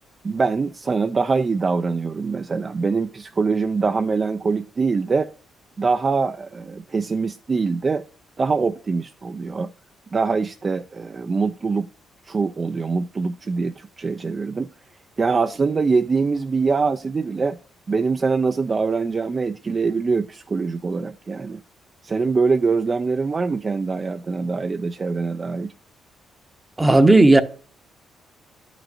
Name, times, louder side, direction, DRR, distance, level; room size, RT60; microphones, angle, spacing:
voice 1, 0.2-5.3 5.8-8.0 8.4-9.7 10.1-11.9 12.3-14.7 15.2-17.6 17.9-21.6 22.0-25.7, right 4 dB, 35° right, 0.4 m, -23 dB
voice 2, 26.8-27.4, right 2 dB, 15° right, 0.8 m, -13 dB
11.0 x 6.0 x 2.5 m
cardioid pair, 90°, 0 cm